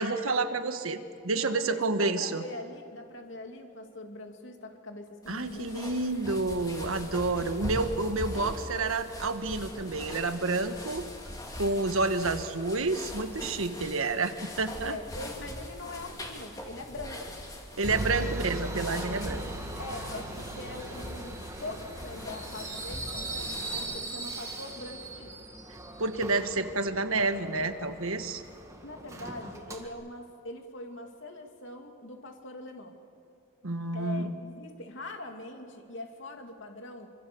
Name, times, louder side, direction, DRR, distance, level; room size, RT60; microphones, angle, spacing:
voice 1, 0.0-2.4 5.3-11.1 11.6-15.0 17.8-19.4 26.0-28.4 33.6-34.3, right 3 dB, 90° right, 8 dB, 1.5 m, -29 dB
voice 2, 1.3-5.7 14.8-17.4 18.1-18.3 19.2-25.4 28.8-33.0 33.9-37.1, left 2 dB, 65° left, 3 dB, 2.7 m, -42 dB
sound 1, 5.2-24.2, left 1 dB, 20° left, 2.7 m, -41 dB
Subway metro underground, 17.9-29.9, right 2 dB, 15° right, 1.9 m, -40 dB
sound 2, 18.0-25.7, right 1 dB, 70° right, 1.3 m, -42 dB
26.5 x 25.0 x 7.1 m, 2.4 s
head